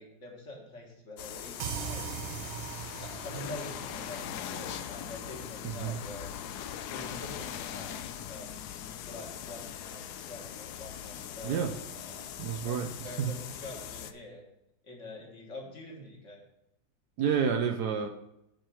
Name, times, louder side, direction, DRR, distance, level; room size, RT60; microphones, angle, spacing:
voice 1, 0.0-2.0 3.0-6.3 6.9-8.7 9.0-12.3 12.6-14.4 14.8-16.4, left 1 dB, 40° left, 0 dB, 1.9 m, -45 dB
sound 1, 1.2-14.1, left 10 dB, 70° left, 1.0 m, -41 dB
sound 2, 1.6-5.1, right 7 dB, 90° right, 1.8 m, -40 dB
voice 2, 11.4-11.7 12.4-13.3 17.2-18.1, right 7 dB, 70° right, 7 dB, 1.0 m, -29 dB
9.1 x 4.6 x 6.2 m, 0.85 s
omnidirectional pair, 2.1 m